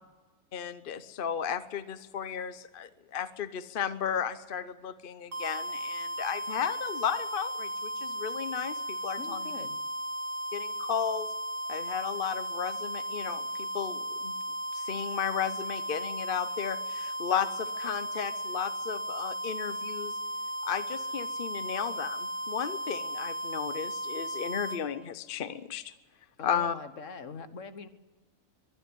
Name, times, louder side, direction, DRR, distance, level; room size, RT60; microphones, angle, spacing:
voice 1, 0.5-9.5 10.5-11.3 11.7-14.3 14.7-20.1 20.6-25.9 26.4-26.7, left 8 dB, 45° left, 13 dB, 0.8 m, -34 dB
sound 1, 5.3-24.8, equal, 60° right, 2.6 m, -35 dB
voice 2, 9.2-9.8 26.4-27.9, left 5 dB, 65° left, 11 dB, 1.6 m, -43 dB
22.5 x 11.5 x 9.8 m, 1.3 s
omnidirectional pair, 1.5 m